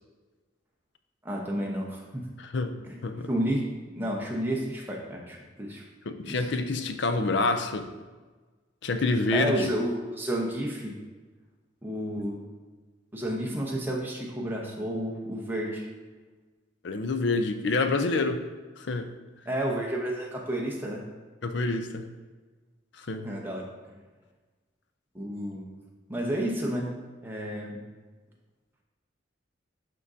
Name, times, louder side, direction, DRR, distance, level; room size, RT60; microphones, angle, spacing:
voice 1, 1.2-2.3 2.9-3.0 3.3-3.6 3.9-5.8 6.3-6.4 9.3-10.9 11.8-12.4 13.1-15.8 19.5-21.0 23.2-23.7 25.1-25.7 26.1-26.9 27.2-27.8, right 1 dB, 10° right, -2 dB, 0.9 m, -31 dB
voice 2, 2.4-3.3 6.1-7.9 8.8-9.7 16.8-18.4 18.8-19.1 21.4-22.1 23.0-23.3, left 3 dB, 65° left, 8 dB, 0.5 m, -27 dB
11.0 x 3.7 x 2.7 m, 1.3 s
head